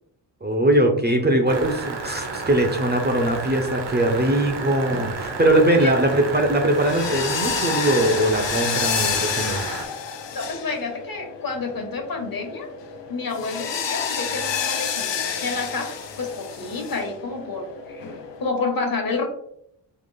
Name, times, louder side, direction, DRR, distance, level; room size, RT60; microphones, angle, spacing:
voice 1, 0.4-9.6, right 1 dB, 25° right, 3 dB, 0.5 m, -21 dB
sound 1, 1.5-9.9, right 4 dB, 70° right, 0.9 m, -32 dB
sound 2, 4.3-18.5, left 7 dB, 75° left, 0.7 m, -30 dB
voice 2, 10.3-12.7 13.1-19.3, left 3 dB, 50° left, 3 dB, 1.1 m, -29 dB
3.8 x 3.4 x 3.8 m, 0.73 s
wide cardioid pair, 145°, 43 cm